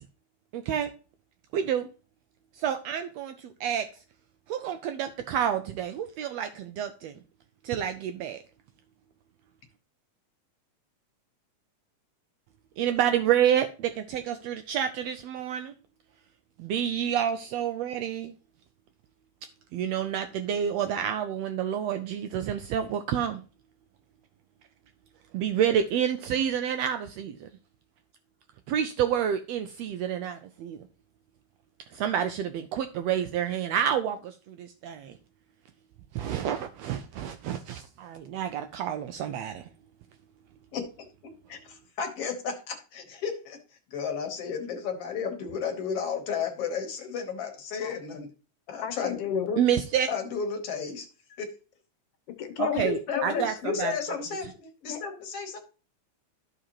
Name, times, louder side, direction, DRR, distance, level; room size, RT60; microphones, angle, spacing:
voice 1, 0.5-0.9 1.5-1.9 2.6-3.9 4.5-7.1 7.6-8.4 12.8-15.7 16.6-18.3 19.7-23.4 25.3-27.5 28.7-30.8 31.9-35.2 36.1-39.6 49.6-50.1 52.6-53.9, right 9 dB, 90° right, 1.4 m, -29 dB
voice 2, 40.7-43.6 43.9-48.3 48.7-49.6 50.1-51.1 51.4-51.5 52.6-55.6, left 6 dB, 60° left, 1.9 m, -33 dB
voice 3, 48.8-49.5 52.3-52.9 53.2-53.6 54.9-55.0, left 9 dB, 80° left, 2.4 m, -34 dB
13.0 x 5.0 x 2.9 m
omnidirectional pair, 3.5 m